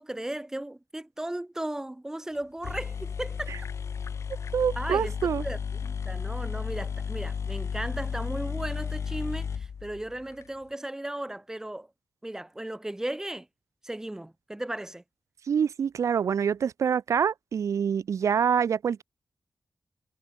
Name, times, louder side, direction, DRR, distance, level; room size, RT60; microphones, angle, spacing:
voice 1, 0.0-3.5 4.8-11.9 12.2-13.5 13.8-15.0, right 1 dB, 10° right, 1.2 m, -36 dB
sound 1, 2.4-2.5 2.6-10.5, left 6 dB, 60° left, 0.9 m, -33 dB
voice 2, 4.5-5.4 15.5-19.0, right 7 dB, 70° right, 0.5 m, -26 dB
wide cardioid pair, 175°, 6 cm